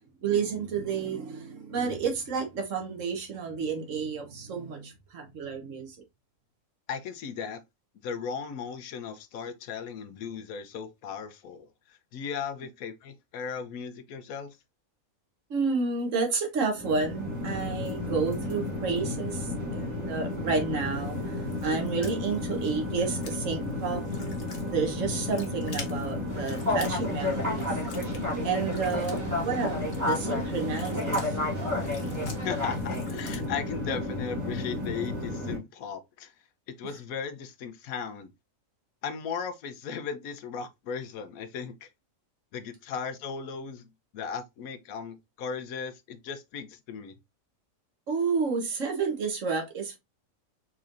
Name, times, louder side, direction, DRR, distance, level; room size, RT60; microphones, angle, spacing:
voice 1, 0.2-6.0 15.5-24.0 24.7-27.7 28.4-31.3 48.1-50.0, right 5 dB, 65° right, 1.4 m, -30 dB
voice 2, 6.9-7.6 8.0-14.5 32.4-36.3 36.8-38.3 39.0-41.9 42.5-43.9 44.1-47.2, left 6 dB, 80° left, 1.1 m, -37 dB
sound 1, 16.7-35.6, left 2 dB, 15° right, 1.5 m, -32 dB
sound 2, 20.8-33.5, left 5 dB, 50° left, 1.1 m, -49 dB
sound 3, 26.3-32.8, right 3 dB, 35° right, 1.5 m, -43 dB
4.3 x 3.7 x 2.5 m
omnidirectional pair, 1.5 m